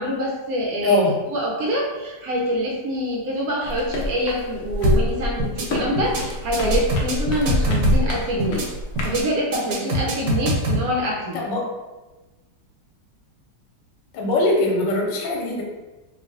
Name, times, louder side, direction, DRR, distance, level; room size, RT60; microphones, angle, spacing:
voice 1, 0.0-1.0 1.3-8.6 9.0-11.4, equal, 70° right, -2 dB, 0.9 m, -25 dB
voice 2, 0.8-1.2 11.3-11.7 14.1-15.6, left 2 dB, 85° left, -1 dB, 1.3 m, -21 dB
sound 1, 3.6-9.2, left 1 dB, 70° left, 0.8 m, -29 dB
sound 2, 4.8-5.1 5.4-5.7 6.0-6.2 6.5-8.1 8.4-8.7 9.0-9.2 9.5-10.8, right 1 dB, 85° right, 1.3 m, -21 dB
3.1 x 2.5 x 2.6 m, 1.2 s
omnidirectional pair, 1.9 m